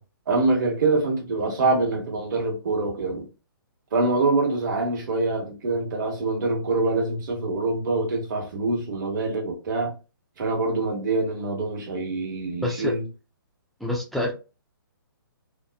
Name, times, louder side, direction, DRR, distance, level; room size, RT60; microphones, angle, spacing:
voice 1, 0.3-3.3 3.9-9.9 10.4-13.0, right 3 dB, 55° right, 1.2 m, -25 dB
voice 2, 12.6-12.9 13.8-14.3, left 1 dB, ahead, 0.4 m, -27 dB
2.9 x 2.1 x 2.3 m
hypercardioid pair, 145°, 12 cm